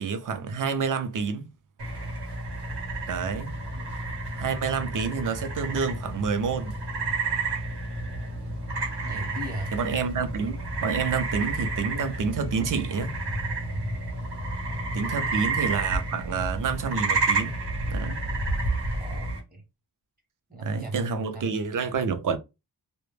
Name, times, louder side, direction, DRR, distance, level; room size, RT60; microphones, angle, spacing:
voice 1, 0.0-1.5 3.1-3.6 4.3-6.7 9.0-9.3 9.7-13.2 14.9-17.6 17.9-18.3 20.6-22.4, right 5 dB, 50° right, 0.5 m, -29 dB
sound 1, 1.8-19.4, right 2 dB, 80° right, 1.0 m, -30 dB
voice 2, 9.0-9.7 14.6-14.9 15.3-15.6 19.0-19.6 20.5-21.5, right 1 dB, 25° right, 0.8 m, -38 dB
2.1 x 2.0 x 3.1 m
wide cardioid pair, 140°, 41 cm